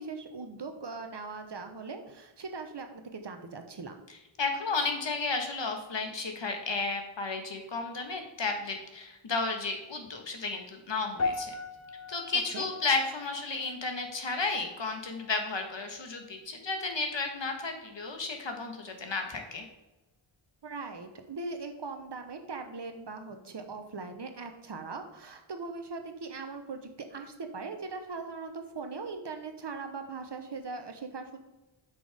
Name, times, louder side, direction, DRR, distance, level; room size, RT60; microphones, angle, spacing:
voice 1, 0.0-4.0 12.5-12.7 20.6-31.4, right 4 dB, 55° right, 6 dB, 1.1 m, -40 dB
voice 2, 4.4-11.5 12.1-19.6, left 3 dB, 60° left, 4 dB, 1.5 m, -33 dB
sound 1, 11.2-15.6 15.8-16.2 16.9-17.0, left 3 dB, 30° left, 0.8 m, -39 dB
8.7 x 6.1 x 3.5 m, 1.0 s
wide cardioid pair, 95°, 49 cm